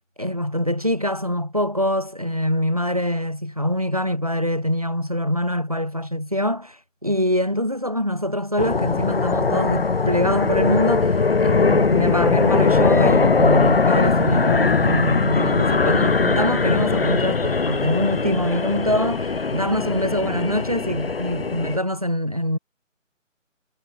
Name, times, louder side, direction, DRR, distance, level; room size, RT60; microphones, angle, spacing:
voice 1, 0.2-22.6, equal, 30° right, 0.6 m, -24 dB
sound 1, 8.6-21.8, left 4 dB, 50° left, 0.5 m, -20 dB
figure-of-eight pair, 170°, 39 cm